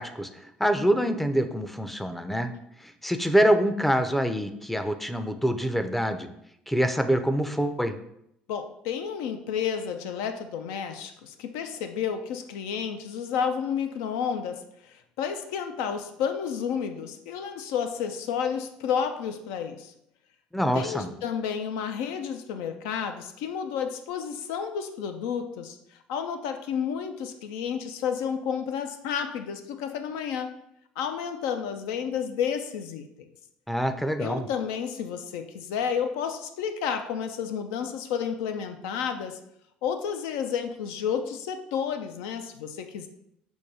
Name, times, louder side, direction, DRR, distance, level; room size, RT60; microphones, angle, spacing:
voice 1, 0.0-2.5 2.8-6.3 6.7-8.0 20.5-21.1 33.7-34.5, equal, 5° left, 9 dB, 0.4 m, -25 dB
voice 2, 8.5-19.9 20.7-30.5 31.0-33.3 34.2-39.4 39.8-43.1, left 7 dB, 80° left, 7 dB, 0.3 m, -31 dB
6.2 x 2.2 x 2.7 m, 0.77 s
supercardioid pair, 80°, 4 cm